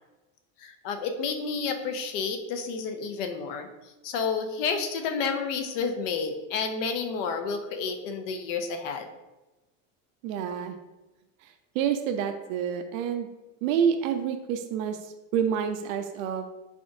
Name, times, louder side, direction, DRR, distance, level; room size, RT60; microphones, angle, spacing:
voice 1, 0.6-9.1, left 5 dB, 70° left, 7 dB, 0.6 m, -30 dB
voice 2, 10.2-10.7 11.8-13.3 13.6-15.0 15.3-16.4, right 8 dB, 90° right, 7 dB, 0.5 m, -28 dB
3.7 x 3.4 x 2.6 m, 1.1 s
cardioid pair, 165°, 39 cm